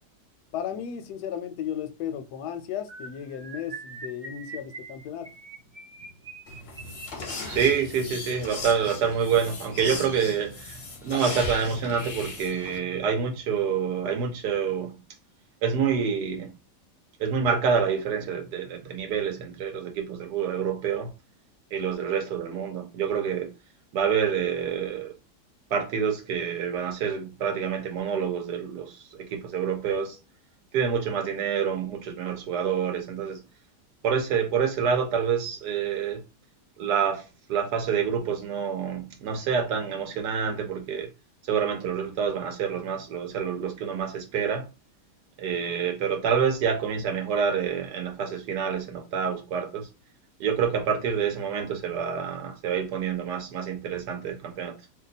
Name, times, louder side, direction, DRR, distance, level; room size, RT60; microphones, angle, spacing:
voice 1, 0.5-5.3, left 9 dB, 75° left, 1.1 m, -35 dB
sound 1, 2.9-10.1 10.8-11.1 11.3-11.6 11.8-12.1, right 3 dB, 55° right, 0.5 m, -44 dB
sound 2, 6.5-12.8, left 3 dB, 50° left, 0.8 m, -37 dB
voice 2, 7.5-15.0 15.6-16.5 17.2-21.1 21.7-23.5 23.9-25.1 25.7-30.2 30.7-33.4 34.0-36.2 36.8-41.1 41.4-44.7 45.4-49.9 50.4-54.7, right 7 dB, 70° right, 1.2 m, -27 dB
2.9 x 2.3 x 3.9 m
omnidirectional pair, 1.9 m